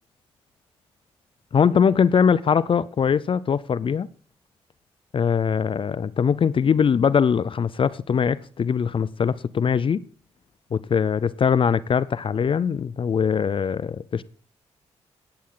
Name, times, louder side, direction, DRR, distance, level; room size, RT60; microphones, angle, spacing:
voice 1, 1.5-4.1 5.1-10.0 10.7-14.2, left 7 dB, 50° left, 0.5 m, -21 dB
15.5 x 9.6 x 3.8 m
supercardioid pair, 60°, 12 cm